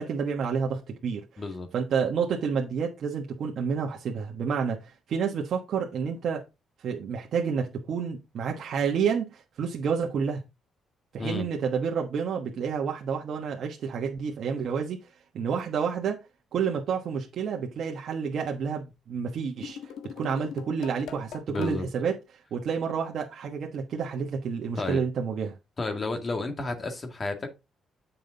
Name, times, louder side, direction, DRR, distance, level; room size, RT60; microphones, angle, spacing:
voice 1, 0.0-1.4 1.7-6.4 6.8-10.4 11.1-16.2 16.5-25.6, right 6 dB, 65° right, 1.3 m, -29 dB
voice 2, 1.4-1.7 11.2-11.5 21.5-21.9 24.8-25.0 25.8-27.5, left 3 dB, 35° left, 2.0 m, -31 dB
sound 1, 19.6-21.8, left 7 dB, 80° left, 1.3 m, -41 dB
7.6 x 5.4 x 4.0 m
cardioid pair, 90°, 0 cm